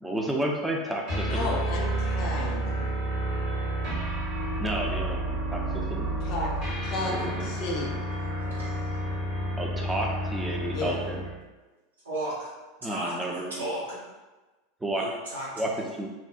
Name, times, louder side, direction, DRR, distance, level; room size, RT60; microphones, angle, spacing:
voice 1, 0.0-1.5 4.6-6.1 7.0-7.5 9.6-11.2 12.8-13.6 14.8-15.0 15.6-16.1, right 1 dB, 10° right, -1 dB, 0.4 m, -31 dB
sound 1, 1.1-11.4, right 1 dB, 45° right, 0.9 m, -30 dB
voice 2, 1.2-2.8 6.2-6.5 6.8-7.1 7.4-7.9 10.7-11.0, left 2 dB, 50° left, -2 dB, 0.6 m, -33 dB
voice 3, 2.5-2.9 8.6-8.8 12.0-12.5 12.8-14.0 14.9-15.8, right 1 dB, 80° right, -8 dB, 0.9 m, -35 dB
2.6 x 2.0 x 2.4 m, 1.2 s
figure-of-eight pair, 80°, 0 cm